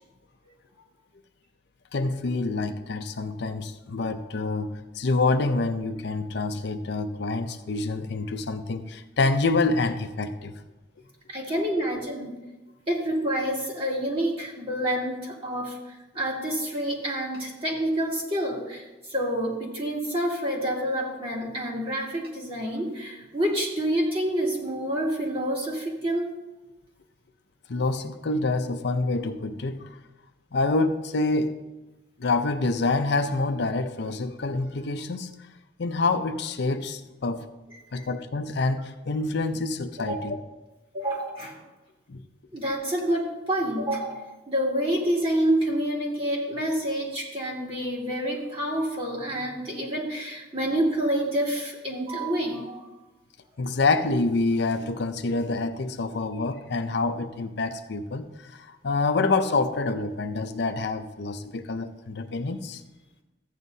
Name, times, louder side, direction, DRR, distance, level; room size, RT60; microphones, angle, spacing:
voice 1, 1.9-10.5 27.7-29.9 30.5-31.6 32.2-35.3 35.8-37.5 37.9-40.4 42.1-42.2 53.6-62.8, left 3 dB, 65° left, 7 dB, 0.6 m, -27 dB
voice 2, 11.3-12.4 12.9-26.3 37.9-38.1 40.0-40.2 40.9-41.6 42.5-52.9, right 1 dB, 30° right, -4 dB, 2.6 m, -28 dB
14.5 x 9.3 x 2.7 m, 1.1 s
head